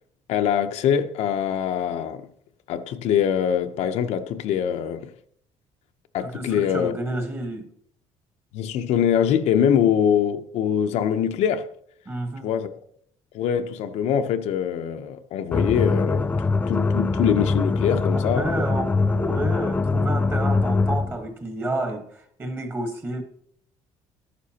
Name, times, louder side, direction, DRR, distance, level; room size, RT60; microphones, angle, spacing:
voice 1, 0.3-2.3 2.7-5.1 6.1-7.0 8.5-11.7 12.4-12.8 13.3-16.3 16.7-18.5, left 8 dB, 70° left, 0.7 m, -23 dB
voice 2, 6.2-7.7 12.1-12.5 18.1-23.2, right 2 dB, 20° right, 1.2 m, -30 dB
sound 1, 15.5-21.2, left 3 dB, 15° left, 0.3 m, -23 dB
14.0 x 11.5 x 2.9 m
cardioid pair, 170°, 12 cm